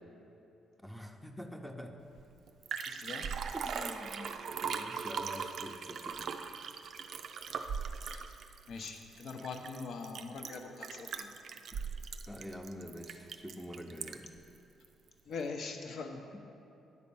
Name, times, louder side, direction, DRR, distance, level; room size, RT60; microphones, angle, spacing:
voice 1, 0.8-2.0 3.5-4.4 4.6-6.3 12.3-14.2, equal, 5° left, 4 dB, 0.7 m, -46 dB
Liquid, 2.2-2.3 2.5-14.4 14.8-14.9, right 6 dB, 65° right, 0.4 m, -40 dB
voice 2, 2.9-3.3 8.0-8.4 8.7-11.3 15.2-16.3, left 4 dB, 65° left, 4 dB, 0.8 m, -42 dB
9.7 x 4.2 x 6.9 m, 2.7 s
cardioid pair, 90°, 0 cm